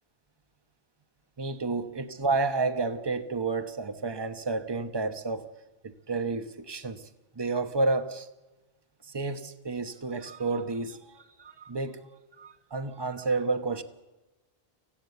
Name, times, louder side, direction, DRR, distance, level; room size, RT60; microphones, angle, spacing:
voice 1, 1.4-5.5 5.8-7.1 7.4-8.3 9.1-12.0 12.4-13.8, right 3 dB, 25° right, 9 dB, 1.1 m, -30 dB
24.5 x 16.5 x 8.2 m, 1.2 s
omnidirectional pair, 1.1 m